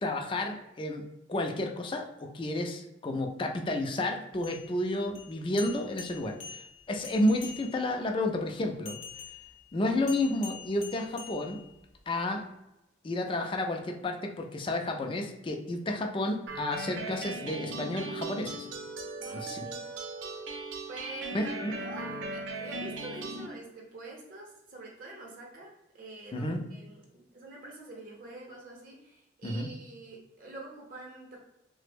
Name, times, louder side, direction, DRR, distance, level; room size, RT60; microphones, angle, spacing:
voice 1, 0.0-1.0 1.3-9.0 9.7-11.6 12.1-12.4 13.0-18.7 19.3-19.6 21.3-21.7 26.3-26.6 29.4-29.7, left 1 dB, 25° left, 3 dB, 0.3 m, -31 dB
sound 1, 4.3-8.0 8.8-12.0, left 6 dB, 85° left, 0.6 m, -46 dB
sound 2, 16.5-23.5, right 3 dB, 75° right, 0.4 m, -38 dB
voice 2, 19.2-19.9 20.9-31.4, right 2 dB, 45° right, -2 dB, 0.7 m, -45 dB
3.2 x 2.0 x 3.2 m, 0.91 s
head